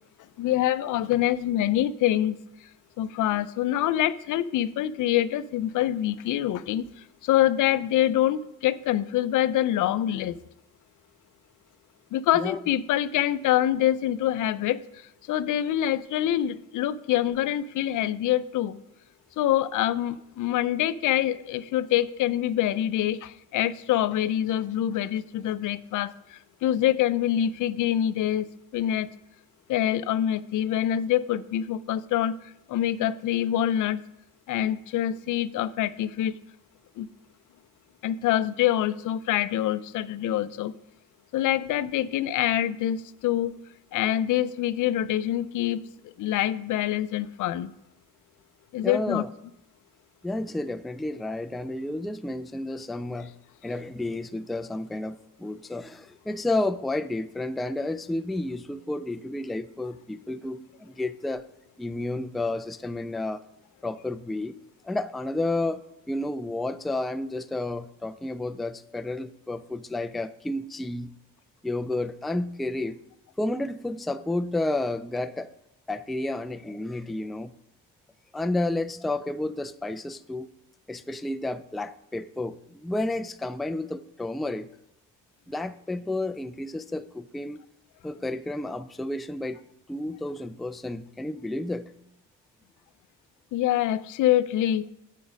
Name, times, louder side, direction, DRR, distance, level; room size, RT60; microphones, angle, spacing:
voice 1, 0.4-2.7 3.0-10.4 12.1-18.8 19.4-29.1 29.7-34.0 34.5-36.4 37.0-37.1 38.0-40.7 41.3-43.5 43.9-47.7 48.7-49.2 93.5-94.9, left 12 dB, 70° left, 0.5 m, -25 dB
voice 2, 48.8-49.3 50.2-53.3 53.6-61.5 61.8-63.4 63.8-64.5 64.8-71.1 71.6-73.0 73.4-75.5 75.9-77.5 78.3-80.5 80.9-84.7 85.5-87.6 88.0-89.6 89.9-91.9, left 2 dB, ahead, 0.3 m, -31 dB
8.4 x 6.2 x 5.1 m
cardioid pair, 90°, 32 cm